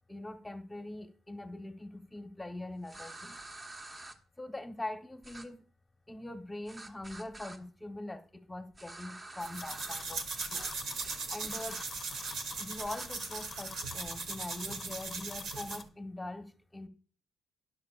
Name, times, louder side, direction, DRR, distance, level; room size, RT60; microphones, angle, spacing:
voice 1, 0.1-3.4 4.4-5.6 6.1-10.2 10.5-10.7 11.3-11.8 12.5-16.9, left 1 dB, 10° left, 7 dB, 1.1 m, -42 dB
sound 1, 2.9-4.2 5.2-5.5 6.7-7.6 8.7-10.0 10.3-10.8 11.0-11.2 11.5-12.3 12.8-13.1, right 2 dB, 25° right, 1.3 m, -48 dB
sound 2, 9.4-15.9, right 4 dB, 75° right, 1.4 m, -39 dB
sound 3, 9.5-15.8, left 5 dB, 35° left, 0.8 m, -47 dB
12.5 x 10.5 x 2.4 m, 0.41 s
cardioid pair, 90°, 0 cm